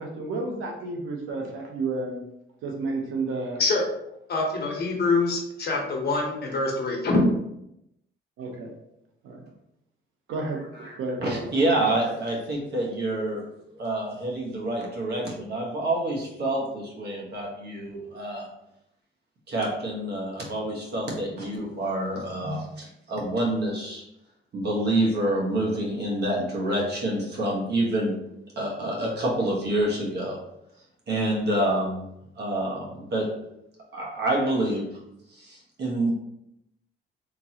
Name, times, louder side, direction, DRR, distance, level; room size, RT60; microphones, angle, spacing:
voice 1, 0.0-2.2 2.6-3.6 8.4-8.7 9.2-9.5 10.3-11.5, right 3 dB, 90° right, 0 dB, 0.9 m, -31 dB
voice 2, 4.3-7.2, left 3 dB, 55° left, 0 dB, 1.1 m, -25 dB
voice 3, 10.8-13.5 13.7-18.5 19.5-24.1 24.5-28.1 28.6-30.4 31.1-32.1 32.4-33.3 33.9-34.9 35.3-36.1, right 1 dB, 55° right, -2 dB, 1.4 m, -27 dB
3.6 x 3.0 x 2.9 m, 0.81 s
cardioid pair, 90°, 20 cm